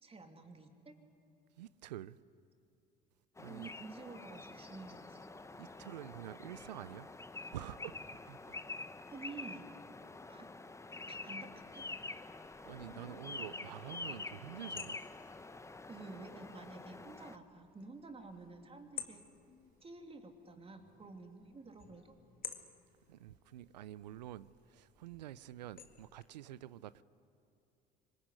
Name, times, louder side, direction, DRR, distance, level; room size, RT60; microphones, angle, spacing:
voice 1, 0.0-0.9 3.4-5.2 9.1-9.7 10.3-10.5 11.1-11.9 15.9-19.2 19.8-22.1, right 3 dB, 25° right, 3.1 m, -51 dB
voice 2, 1.6-2.2 3.4-3.7 5.6-7.1 7.5-8.6 12.6-15.0 23.1-27.0, right 13 dB, 85° right, 0.6 m, -48 dB
sound 1, 3.4-17.4, left 3 dB, 15° left, 1.0 m, -47 dB
sound 2, 11.6-26.2, left 8 dB, 45° left, 2.1 m, -55 dB
24.5 x 21.0 x 9.7 m
hypercardioid pair, 65°, 21 cm